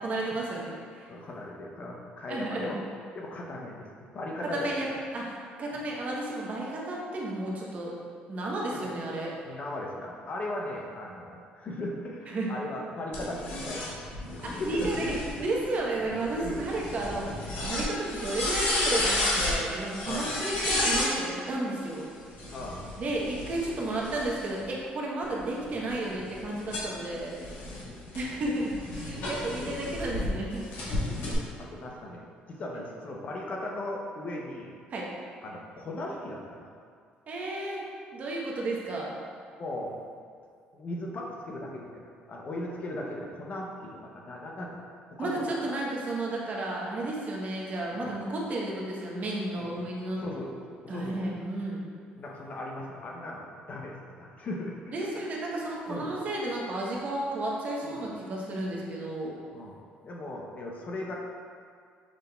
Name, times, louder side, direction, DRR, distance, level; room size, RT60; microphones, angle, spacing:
voice 1, 0.0-1.1 2.3-2.8 4.4-7.9 8.3-9.3 12.3-12.5 14.4-22.1 23.0-27.3 28.1-30.7 34.9-35.1 37.3-39.2 45.2-50.2 50.9-51.9 54.9-59.4, right 2 dB, 45° right, -3 dB, 0.8 m, -33 dB
voice 2, 1.1-2.8 3.1-4.7 5.7-5.8 8.7-8.9 9.4-15.2 16.4-16.6 20.0-20.3 22.5-22.9 26.4-26.6 27.6-27.9 30.7-30.9 31.6-32.2 32.5-34.7 35.4-36.7 39.5-40.0 40.7-44.8 45.1-45.8 47.9-48.1 49.6-49.8 50.2-51.3 52.2-55.2 55.9-56.1 57.8-58.0 58.6-58.7 59.5-59.8 60.0-61.1, left 1 dB, 45° left, -1 dB, 0.7 m, -38 dB
sound 1, 13.1-21.1 22.3-24.6 25.2-30.3 30.7-31.3, left 1 dB, 80° left, 1.1 m, -32 dB
6.1 x 3.4 x 2.2 m, 2.2 s
cardioid pair, 105°, 3 cm